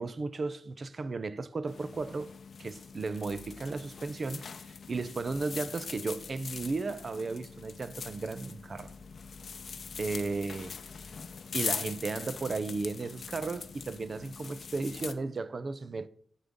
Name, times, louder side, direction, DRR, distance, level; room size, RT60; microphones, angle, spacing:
voice 1, 0.0-2.3 2.6-8.9 10.0-10.8 11.5-16.1, right 3 dB, 40° right, 0.5 m, -35 dB
sound 1, 1.7-15.1, left 5 dB, 55° left, 0.6 m, -42 dB
11.5 x 8.1 x 3.6 m
wide cardioid pair, 180°, 0 cm